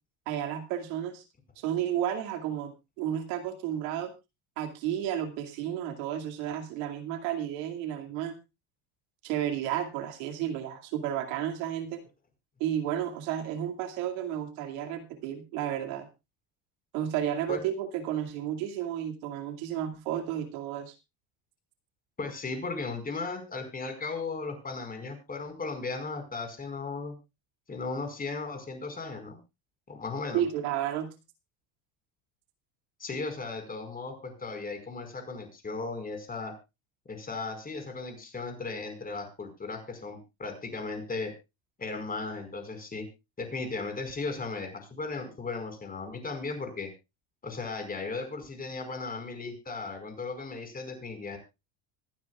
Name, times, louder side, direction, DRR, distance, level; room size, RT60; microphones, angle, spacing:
voice 1, 0.3-1.2 1.6-4.1 4.6-8.4 9.2-12.0 12.6-16.1 16.9-20.9 30.3-31.1, right 10 dB, 80° right, 4 dB, 2.5 m, -32 dB
voice 2, 22.2-27.1 27.7-29.4 29.9-30.4 33.0-36.5 37.1-41.3 41.8-43.1 43.4-46.9 47.4-51.4, left 3 dB, 20° left, 5 dB, 5.1 m, -36 dB
25.5 x 9.8 x 2.4 m, 0.26 s
supercardioid pair, 115°, 42 cm